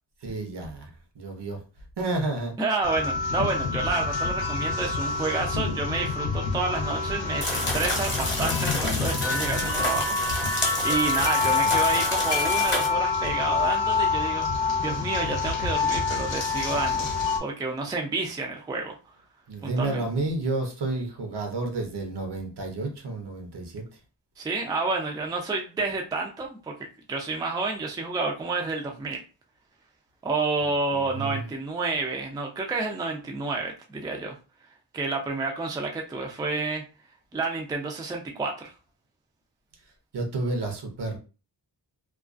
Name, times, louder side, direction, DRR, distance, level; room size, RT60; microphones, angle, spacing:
voice 1, 0.2-0.9 1.1-1.6 2.0-2.6 11.3-12.0 19.5-23.8 30.9-31.4 40.1-41.2, right 2 dB, 65° right, 3 dB, 0.8 m, -31 dB
voice 2, 2.6-14.5 14.8-17.1 17.4-18.9 19.6-20.1 24.4-26.7 27.1-29.2 30.2-34.4 34.9-36.8 37.3-38.7, right 3 dB, 10° right, 1 dB, 0.3 m, -29 dB
sound 1, 2.8-17.4, left 4 dB, 85° left, 0.6 m, -27 dB
sound 2, 7.4-12.9, left 2 dB, 25° left, 0.8 m, -30 dB
2.3 x 2.2 x 2.4 m, 0.34 s
wide cardioid pair, 105°, 44 cm